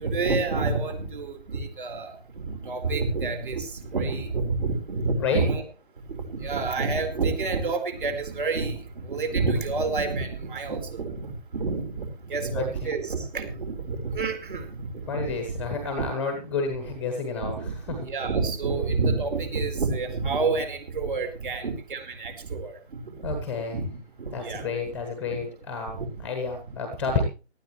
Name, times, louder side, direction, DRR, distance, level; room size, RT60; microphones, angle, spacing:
voice 1, 0.0-2.1 2.4-5.6 6.3-8.8 9.1-12.0 12.3-14.6 15.1-15.3 17.4-22.7 23.2-23.4 23.7-24.0 24.3-24.7 25.9-26.1, right 3 dB, 50° right, 5 dB, 4.3 m, -28 dB
voice 2, 12.5-12.9 15.1-18.1 23.2-23.8 24.3-27.3, left 4 dB, 5° left, 5 dB, 1.0 m, -30 dB
18.0 x 13.0 x 3.2 m, 0.33 s
figure-of-eight pair, 145°, 34 cm